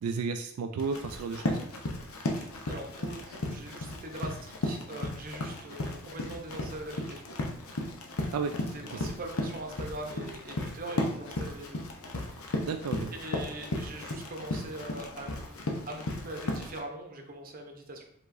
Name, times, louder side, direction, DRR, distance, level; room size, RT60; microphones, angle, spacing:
voice 1, 0.0-1.6 8.3-8.5 8.9-9.0 12.6-13.1, right 5 dB, 85° right, 6 dB, 0.3 m, -33 dB
Run, 0.8-16.8, left 1 dB, 75° left, 0.7 m, -35 dB
voice 2, 2.3-7.2 8.7-11.9 13.1-18.0, right 1 dB, 40° right, 2 dB, 0.8 m, -42 dB
4.7 x 3.7 x 2.6 m, 0.70 s
head